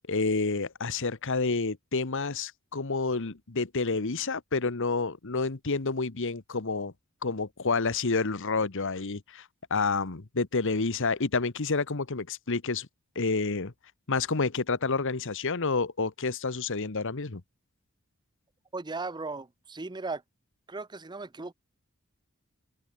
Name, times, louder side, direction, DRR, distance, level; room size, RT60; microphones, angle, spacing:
voice 1, 0.1-6.9 7.2-12.9 13.1-13.7 14.1-17.4, left 4 dB, 65° left, 1.2 m, -29 dB
voice 2, 18.7-20.2 20.7-21.5, right 3 dB, 20° right, 0.7 m, -37 dB
head